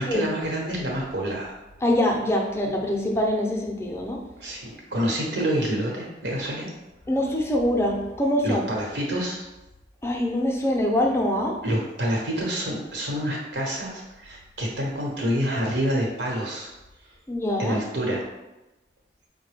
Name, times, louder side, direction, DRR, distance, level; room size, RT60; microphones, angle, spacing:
voice 1, 0.0-1.5 4.4-6.7 8.4-9.4 11.6-16.7 17.6-18.2, equal, 90° right, -2 dB, 1.0 m, -27 dB
voice 2, 1.8-4.2 7.1-8.6 10.0-11.6 17.3-17.8, left 1 dB, 15° left, 0 dB, 0.4 m, -24 dB
4.6 x 2.2 x 3.3 m, 1.0 s
head